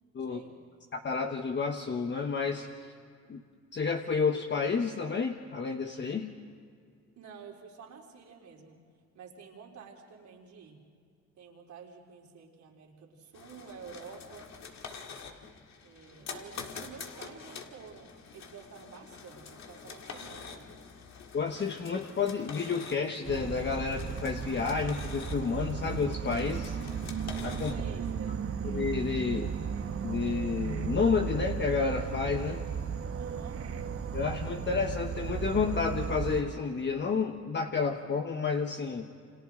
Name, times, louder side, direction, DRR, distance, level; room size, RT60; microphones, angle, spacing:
voice 1, 0.2-0.5 7.2-8.8 9.1-10.8 11.4-14.5 15.8-20.7 27.7-28.5 33.2-33.6, right 6 dB, 70° right, -1 dB, 3.9 m, -50 dB
voice 2, 0.9-2.9 3.3-3.4 3.7-6.3 21.3-26.8 27.4-27.7 28.6-29.5 30.0-32.6 34.1-39.1, left 5 dB, 35° left, 3 dB, 1.2 m, -30 dB
sound 1, 13.3-27.8, left 5 dB, 65° left, 2.0 m, -46 dB
Insect / Frog, 23.3-36.4, right 7 dB, 50° right, 1.3 m, -35 dB
29.0 x 26.5 x 3.9 m, 2.2 s
cardioid pair, 90°, 30 cm